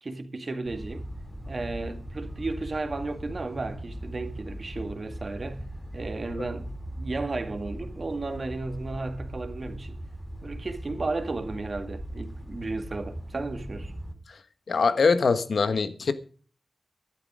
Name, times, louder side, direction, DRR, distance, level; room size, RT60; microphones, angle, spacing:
voice 1, 0.0-1.1 1.5-5.7 5.9-10.0 10.4-13.9, right 3 dB, 45° right, 2.1 m, -34 dB
sound 1, 0.6-14.1, right 1 dB, 10° left, 3.3 m, -39 dB
voice 2, 14.7-16.1, left 4 dB, 75° left, 1.4 m, -23 dB
13.0 x 11.5 x 5.0 m
wide cardioid pair, 120°, 0 cm